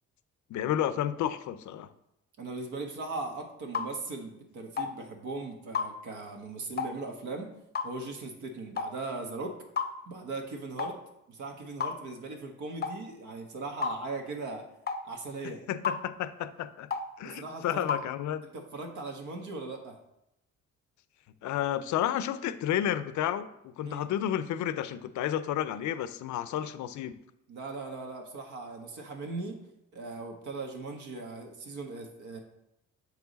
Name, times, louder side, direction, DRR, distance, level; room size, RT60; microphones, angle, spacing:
voice 1, 0.5-1.9 15.4-16.9 17.2-18.4 21.4-27.1, left 11 dB, 75° left, 13 dB, 0.5 m, -31 dB
voice 2, 2.4-7.5 7.8-9.5 10.0-11.0 11.3-14.7 15.0-15.6 17.2-17.9 18.5-20.0 23.8-24.0 27.5-29.6 29.9-32.4, right 3 dB, 75° right, 3 dB, 1.3 m, -39 dB
sound 1, 3.7-3.9 4.8-4.9 5.7-5.9 6.8-7.0 7.7-7.9 8.8-8.9 9.8-9.9 10.8-11.0 11.8-12.0 12.8-13.0 13.8-14.0 14.9-15.0 15.8-16.0 16.9-17.1 17.9-18.1, left 5 dB, 35° left, 0.6 m, -31 dB
6.8 x 4.7 x 4.0 m, 0.83 s
cardioid pair, 90°, 30 cm